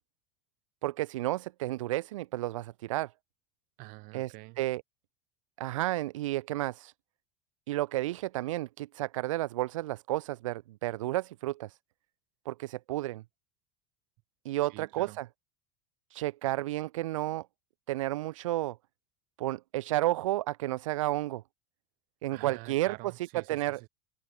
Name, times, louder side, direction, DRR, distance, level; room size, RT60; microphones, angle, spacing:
voice 1, 0.8-3.1 4.1-4.8 5.6-6.9 7.7-11.8 12.5-13.2 14.4-15.3 16.1-17.5 17.9-18.8 19.4-21.4 22.2-22.9 23.5-23.8, right 16 dB, 85° right, 0.4 m, -32 dB
voice 2, 3.8-4.6 14.7-15.2 22.3-23.9, right 27 dB, 60° right, 1.8 m, -47 dB
open air
hypercardioid pair, 90°, 16 cm